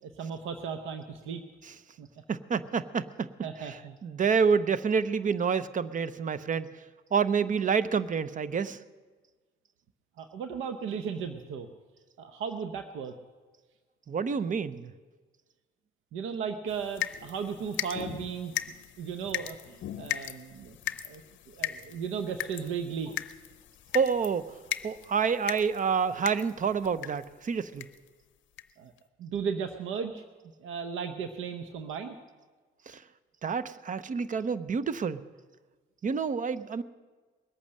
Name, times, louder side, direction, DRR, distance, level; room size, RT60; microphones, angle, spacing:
voice 1, 0.0-1.4 2.0-2.1 3.4-4.0 10.2-11.7 12.2-13.1 16.1-18.6 19.0-20.8 21.0-23.1 28.8-28.9 29.2-30.2 30.6-32.2, right 6 dB, 85° right, 8 dB, 0.8 m, -36 dB
voice 2, 2.3-3.3 4.0-6.7 7.1-8.8 14.1-14.9 23.9-24.5 24.8-27.9 32.9-33.0 33.4-35.2 36.0-36.8, right 6 dB, 40° right, 15 dB, 0.7 m, -28 dB
sound 1, 16.7-27.3 27.8-28.1 28.6-28.7 29.0-29.1, left 12 dB, 70° left, 0.6 m, -38 dB
20.5 x 8.7 x 6.5 m, 1.4 s
cardioid pair, 90°, 20 cm